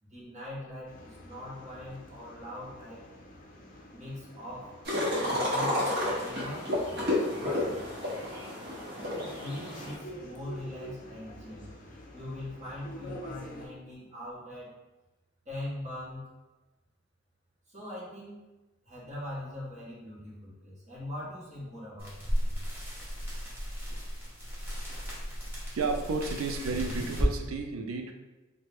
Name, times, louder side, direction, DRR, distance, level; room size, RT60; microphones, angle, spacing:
voice 1, 0.0-3.0 3.9-4.7 5.2-6.7 7.4-7.7 9.4-11.7 12.1-14.7 15.4-16.3 17.7-18.3 18.8-22.3, left 1 dB, 35° right, -8 dB, 1.1 m, -41 dB
sound 1, 0.9-13.7, equal, 40° left, 0.4 m, -48 dB
sound 2, 4.8-9.9, left 1 dB, 50° right, 0.9 m, -31 dB
sound 3, 22.0-27.3, equal, 10° right, 0.8 m, -34 dB
voice 2, 25.7-28.1, right 4 dB, 80° right, 4 dB, 0.4 m, -32 dB
3.1 x 2.1 x 3.4 m, 1.1 s
head